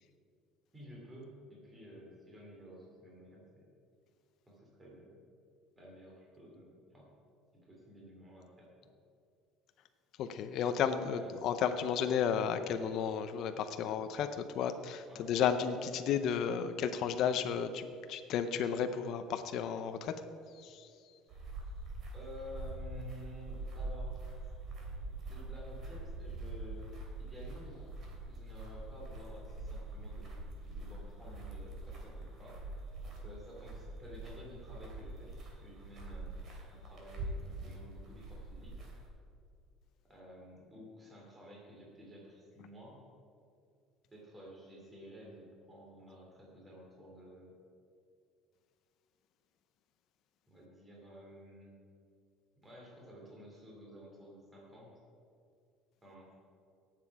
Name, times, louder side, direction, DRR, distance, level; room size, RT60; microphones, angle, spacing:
voice 1, 0.7-3.7 4.4-5.2 5.8-7.1 7.6-8.9 11.1-11.3 15.1-15.3 22.1-24.2 24.9-28.0 28.3-30.3 30.6-32.6 33.2-36.4 36.7-38.8 40.1-43.0 44.1-47.5 50.5-51.8 52.6-54.9 56.0-56.3, equal, 15° right, -3 dB, 3.1 m, -52 dB
voice 2, 10.2-20.2 20.6-20.9, left 7 dB, 55° left, 8 dB, 0.6 m, -33 dB
sound 1, 21.3-39.1, right 2 dB, 40° right, 3.0 m, -44 dB
17.5 x 7.6 x 4.8 m, 2.4 s
cardioid pair, 140°, 0 cm